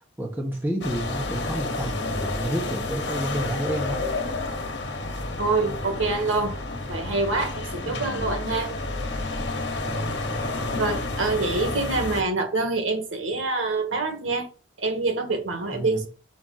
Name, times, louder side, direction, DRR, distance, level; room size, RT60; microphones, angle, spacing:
voice 1, 0.2-4.0 7.8-8.0 9.8-10.2 15.7-16.0, right 1 dB, 10° right, 1.1 m, -30 dB
sound 1, 0.8-12.2, left 2 dB, 60° left, 1.3 m, -30 dB
voice 2, 5.4-6.5 6.9-8.7 10.8-14.5 14.8-16.1, right 3 dB, 90° right, 1.7 m, -26 dB
6.4 x 5.2 x 4.1 m
head